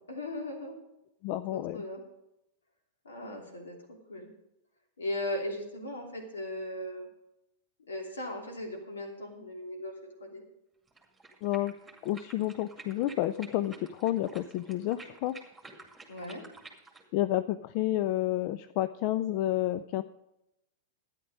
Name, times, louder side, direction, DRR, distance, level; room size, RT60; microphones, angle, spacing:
voice 1, 0.1-0.7 1.5-2.0 3.0-3.8 4.1-4.3 5.0-7.1 7.9-9.9 10.2-10.4 16.1-16.4, left 1 dB, 70° left, 1 dB, 2.9 m, -37 dB
voice 2, 1.2-1.8 11.4-11.7 12.0-15.3 17.1-20.0, left 14 dB, 45° left, 13 dB, 0.4 m, -30 dB
sound 1, 10.9-17.1, right 3 dB, 5° right, 2.3 m, -51 dB
12.5 x 9.9 x 5.2 m, 0.87 s
figure-of-eight pair, 95°, 0 cm